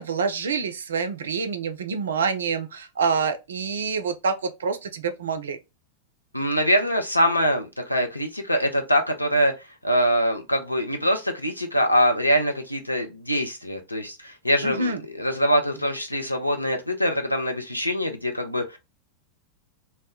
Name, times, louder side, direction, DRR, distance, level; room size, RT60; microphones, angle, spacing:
voice 1, 0.0-5.6 14.6-15.0, right 5 dB, 65° right, 0.4 m, -27 dB
voice 2, 6.3-9.5 9.8-18.8, equal, 90° left, 0.5 m, -23 dB
2.1 x 2.0 x 3.5 m
figure-of-eight pair, 90°, 0 cm